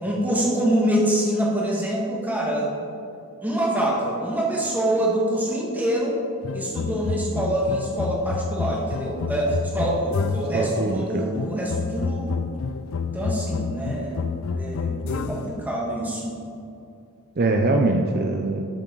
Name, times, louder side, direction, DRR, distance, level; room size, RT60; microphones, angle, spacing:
voice 1, 0.0-2.9 3.4-6.2 6.5-12.4 13.0-16.4, right 1 dB, 10° right, -3 dB, 1.6 m, -25 dB
sound 1, 6.4-10.7 11.3-15.6, left 5 dB, 65° left, 0.4 m, -29 dB
voice 2, 10.4-11.3 17.4-18.6, right 2 dB, 45° right, 3 dB, 0.5 m, -23 dB
11.5 x 7.1 x 3.9 m, 2.6 s
head